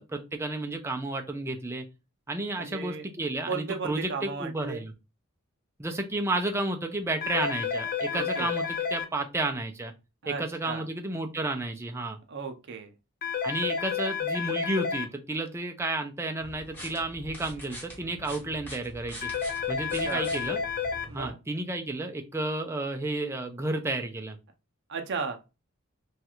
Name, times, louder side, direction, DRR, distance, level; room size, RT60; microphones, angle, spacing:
voice 1, 0.0-1.8 2.3-4.9 5.8-9.9 10.3-12.2 13.4-19.3 19.7-20.6 21.1-24.4, right 2 dB, 15° right, 4 dB, 0.4 m, -32 dB
voice 2, 2.6-3.1 3.5-4.8 8.1-8.5 10.2-10.8 12.3-12.9 20.0-20.2 21.1-21.3 24.9-25.4, right 4 dB, 60° right, 5 dB, 0.6 m, -35 dB
sound 1, 7.2-9.1 13.2-15.1 19.2-21.1, left 6 dB, 45° left, 0.4 m, -30 dB
sound 2, 16.4-21.3, equal, 10° left, 1.2 m, -45 dB
3.1 x 2.4 x 2.9 m, 0.27 s
head